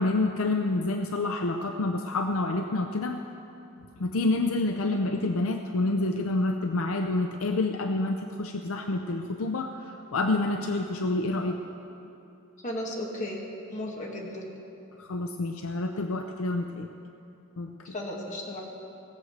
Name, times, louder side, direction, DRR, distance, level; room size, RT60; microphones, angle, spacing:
voice 1, 0.0-3.2 4.0-9.7 10.1-11.6 15.0-16.9 17.6-17.7, left 2 dB, 70° left, 5 dB, 0.6 m, -28 dB
voice 2, 12.6-13.4 13.7-14.4 17.8-18.6, left 1 dB, 35° left, -2 dB, 2.1 m, -34 dB
18.0 x 7.9 x 6.5 m, 2.9 s
head